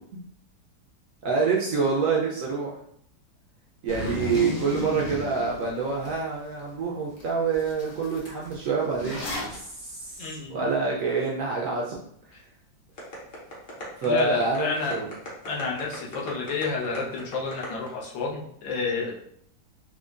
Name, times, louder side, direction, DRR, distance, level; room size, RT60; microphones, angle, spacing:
voice 1, 1.2-2.8 3.8-12.0 14.0-15.1, right 4 dB, 80° right, -3 dB, 0.7 m, -27 dB
Zipper (clothing), 3.9-6.1 6.6-6.7 7.2-7.3 7.5-9.6, left 1 dB, 60° left, 0.5 m, -33 dB
voice 2, 10.2-10.7 14.0-15.0 15.4-19.1, left 4 dB, 85° left, -3 dB, 1.5 m, -30 dB
sound 1, 13.0-17.9, left 1 dB, 45° left, 0.8 m, -39 dB
4.6 x 2.2 x 2.4 m, 0.69 s
omnidirectional pair, 2.0 m